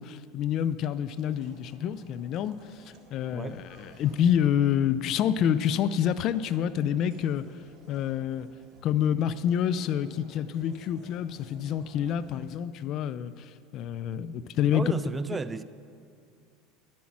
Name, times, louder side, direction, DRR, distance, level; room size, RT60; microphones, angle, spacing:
voice 1, 0.0-7.4 7.9-8.5 8.8-14.8, left 9 dB, 50° left, 0.4 m, -28 dB
sound 1, 1.0-12.5, right 4 dB, 45° right, 1.6 m, -55 dB
voice 2, 3.3-3.6 14.7-15.6, right 4 dB, 20° right, 0.4 m, -33 dB
10.5 x 8.6 x 5.9 m
supercardioid pair, 100°, 0 cm